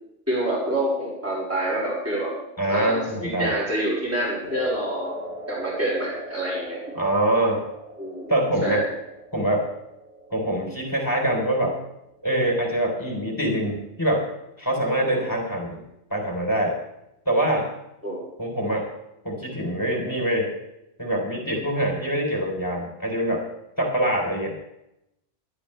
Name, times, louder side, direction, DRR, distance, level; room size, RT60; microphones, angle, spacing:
voice 1, 0.3-2.3 2.7-5.2 5.5-6.8 8.0-8.3 8.6-8.9 15.0-15.2 18.0-18.3, right 1 dB, 10° right, -5 dB, 5.7 m, -27 dB
voice 2, 2.6-3.5 7.0-7.6 8.3-8.8 9.3-9.6 10.3-11.8 12.2-14.3 14.6-15.8 16.1-16.8 17.3-17.7 18.4-18.9 19.2-20.5 21.0-23.4 23.8-24.5, right 1 dB, 15° left, 0 dB, 3.9 m, -24 dB
sound 1, 4.4-12.8, left 1 dB, 70° right, 7.3 m, -40 dB
20.5 x 12.5 x 3.4 m, 0.86 s
omnidirectional pair, 1.2 m